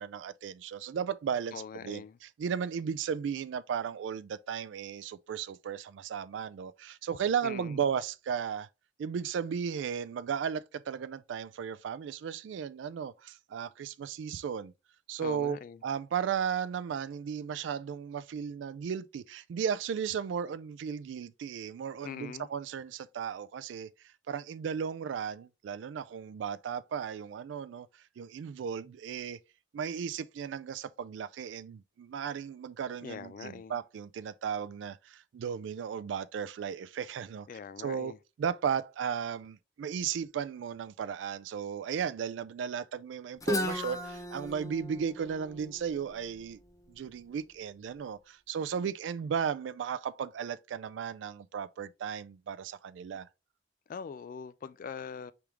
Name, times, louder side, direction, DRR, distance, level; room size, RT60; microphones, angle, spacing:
voice 1, 0.0-8.7 9.0-14.7 15.1-15.6 15.8-23.9 24.3-27.9 28.2-29.4 29.7-37.5 37.8-38.1 38.4-46.6 46.9-53.3, right 7 dB, 90° right, 0.3 m, -35 dB
voice 2, 1.5-2.2 7.4-7.8 15.2-15.8 22.0-22.5 33.0-33.8 37.5-38.2 53.9-55.3, left 6 dB, 50° left, 0.3 m, -42 dB
Guitar, 43.4-47.2, left 1 dB, 20° left, 0.6 m, -36 dB
4.9 x 3.5 x 2.9 m
head